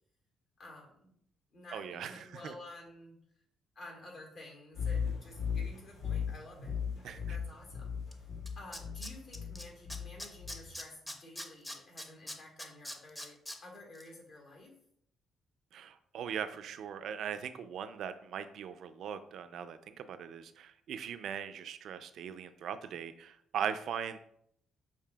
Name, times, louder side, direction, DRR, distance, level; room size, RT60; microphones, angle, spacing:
voice 1, 0.6-1.2 1.5-3.2 3.7-6.8 7.0-8.0 8.5-14.7, left 1 dB, 65° left, -1 dB, 1.6 m, -51 dB
voice 2, 1.7-2.5 7.0-7.4 15.7-24.2, right 8 dB, 70° right, 11 dB, 0.3 m, -40 dB
sound 1, 4.7-10.8, left 6 dB, 85° left, 1.6 m, -37 dB
Tools, 8.1-8.2 8.5-9.6 9.9-13.6 13.9-14.0, left 1 dB, 10° left, 0.5 m, -42 dB
6.6 x 2.7 x 2.3 m, 0.69 s
cardioid pair, 90°, 0 cm